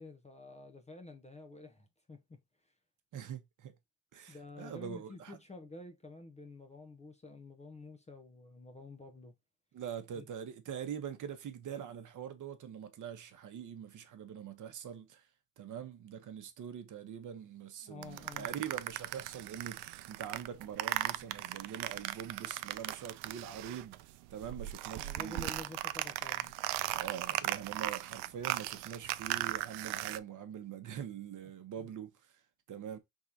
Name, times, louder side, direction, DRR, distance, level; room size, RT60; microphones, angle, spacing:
voice 1, 0.0-2.4 4.3-9.3 10.1-10.3 17.8-18.5 24.9-26.5 31.8-31.9, left 2 dB, 15° left, 0.7 m, -50 dB
voice 2, 3.1-3.7 4.1-5.4 9.7-15.3 15.6-25.5 26.9-32.4 32.7-33.0, right 8 dB, 40° right, 1.0 m, -44 dB
sound 1, 18.0-24.0 24.3-30.2, right 16 dB, 60° right, 0.5 m, -38 dB
4.7 x 3.7 x 2.7 m
cardioid pair, 115°, 46 cm